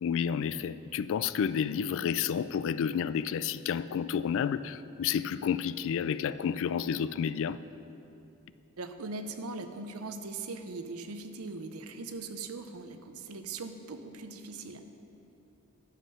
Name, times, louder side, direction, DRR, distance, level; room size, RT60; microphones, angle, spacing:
voice 1, 0.0-7.6, left 7 dB, 65° left, 15 dB, 0.3 m, -30 dB
voice 2, 8.8-14.8, right 3 dB, 85° right, 8 dB, 0.7 m, -40 dB
11.0 x 7.4 x 5.5 m, 2.8 s
head